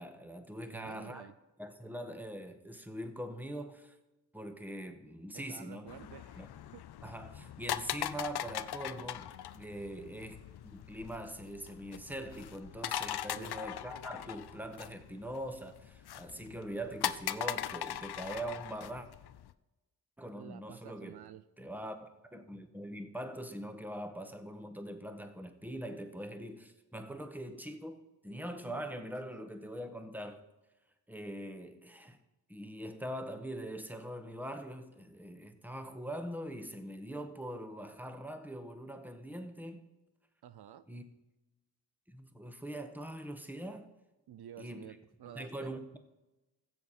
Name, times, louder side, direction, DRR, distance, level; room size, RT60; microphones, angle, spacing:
voice 1, 0.0-1.3 1.6-3.9 4.3-5.9 6.4-6.5 7.0-19.1 20.2-21.2 21.6-30.4 31.1-32.2 32.5-39.8 40.9-41.0 42.1-43.9 44.6-44.9 45.3-46.0, right 1 dB, 5° right, 1.4 m, -43 dB
voice 2, 0.6-1.3 5.3-6.4 6.7-6.9 13.2-13.6 20.3-21.4 40.4-40.9 44.3-45.7, right 10 dB, 70° right, 0.6 m, -50 dB
sound 1, 5.9-19.5, left 11 dB, 70° left, 0.6 m, -40 dB
15.5 x 7.2 x 4.3 m
cardioid pair, 55°, 40 cm